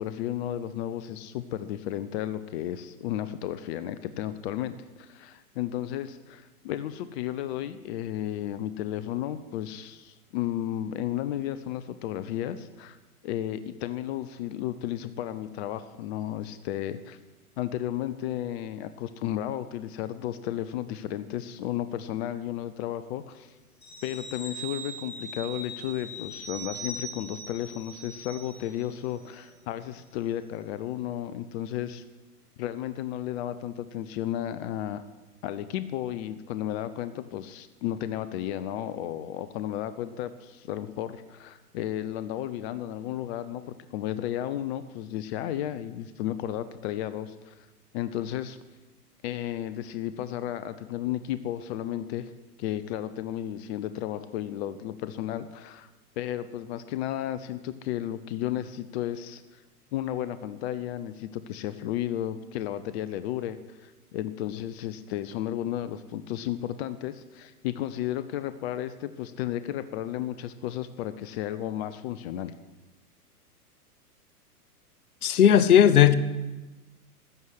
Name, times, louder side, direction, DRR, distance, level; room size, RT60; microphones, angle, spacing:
voice 1, 0.0-13.0 13.2-17.2 17.6-23.5 24.0-32.0 32.6-35.0 35.4-47.7 47.9-48.6 49.2-52.3 52.6-55.9 56.2-59.6 59.9-72.5, left 12 dB, 40° left, 13 dB, 0.8 m, -33 dB
sound 1, 23.8-28.9 29.2-29.4, right 2 dB, 20° left, 4.7 m, -41 dB
voice 2, 75.2-76.1, left 9 dB, 65° left, 15 dB, 1.1 m, -16 dB
14.5 x 6.4 x 9.8 m, 1.1 s
hypercardioid pair, 120°, 47 cm